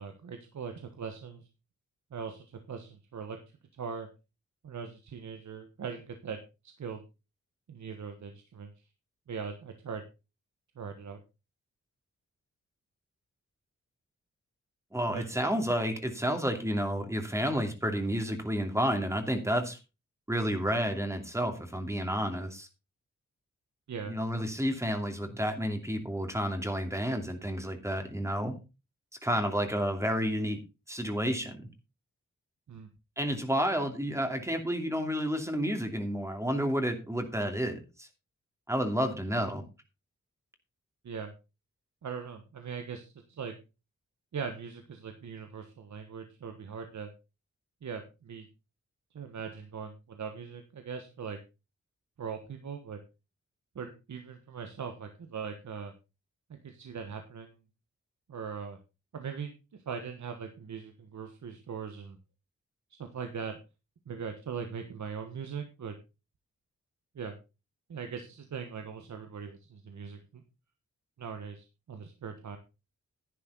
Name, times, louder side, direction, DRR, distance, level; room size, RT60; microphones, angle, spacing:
voice 1, 0.0-1.5 2.1-3.4 3.8-4.1 4.6-6.4 6.6-7.0 7.7-8.8 9.3-10.0 10.7-11.2 15.1-15.2 23.9-24.1 32.7-32.9 41.0-41.3 42.0-43.5 44.3-47.1 47.8-48.5 49.1-51.4 52.2-53.0 53.7-55.9 56.6-57.6 58.3-58.8 59.1-62.2 62.9-63.6 64.1-66.0 67.1-67.4 67.9-70.4 71.2-72.6, right 6 dB, 75° right, 6 dB, 1.4 m, -40 dB
voice 2, 14.9-19.8 20.3-22.7 24.1-28.6 29.2-30.6 30.9-31.6 33.2-38.1 38.7-39.6, equal, 10° right, 5 dB, 2.6 m, -30 dB
11.0 x 10.0 x 4.0 m, 0.29 s
cardioid pair, 75°, 29 cm